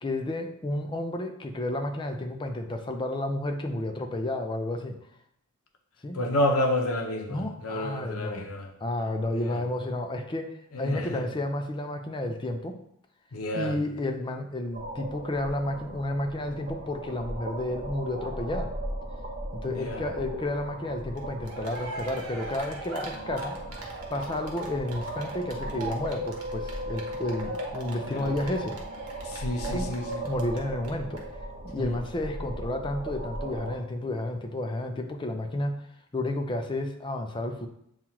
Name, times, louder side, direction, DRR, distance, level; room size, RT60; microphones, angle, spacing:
voice 1, 0.0-4.9 6.0-6.2 7.3-8.5 8.8-12.8 13.5-18.7 19.6-23.6 24.1-28.8 29.6-29.9 30.2-31.2 31.6-35.8 36.1-37.7, left 1 dB, 20° left, 4 dB, 0.4 m, -31 dB
voice 2, 6.1-8.7 9.4-9.6 10.7-11.2 13.3-13.7 19.6-20.0 28.1-28.3 29.3-30.2 31.8-31.9, left 1 dB, 65° left, 4 dB, 0.7 m, -30 dB
sound 1, 14.7-33.8, right 1 dB, 40° right, 0.7 m, -37 dB
Cheering, 21.2-21.3 21.4-30.6 30.8-30.9 31.2-31.3, right 2 dB, 80° right, 0.9 m, -41 dB
7.1 x 2.4 x 2.9 m, 0.72 s
head